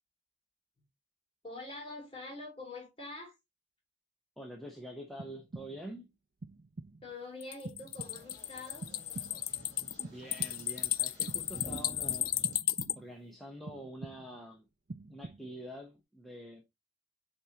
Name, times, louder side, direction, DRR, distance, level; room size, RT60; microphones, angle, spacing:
voice 1, 1.4-3.3 7.0-8.9, left 2 dB, 30° left, 3.6 m, -45 dB
voice 2, 4.4-6.1 10.1-12.5 13.0-14.6 15.1-16.6, equal, ahead, 1.0 m, -46 dB
sound 1, 5.2-6.0 6.4-7.1 7.7-8.4 8.8-9.6 10.0-10.9 11.3-12.1 12.4-13.2 13.7-14.5 14.9-15.7, right 3 dB, 50° right, 0.5 m, -47 dB
sound 2, 7.4-12.9, left 13 dB, 45° left, 0.4 m, -34 dB
sound 3, 7.9-12.6, equal, 20° right, 4.7 m, -50 dB
8.7 x 4.4 x 2.9 m
head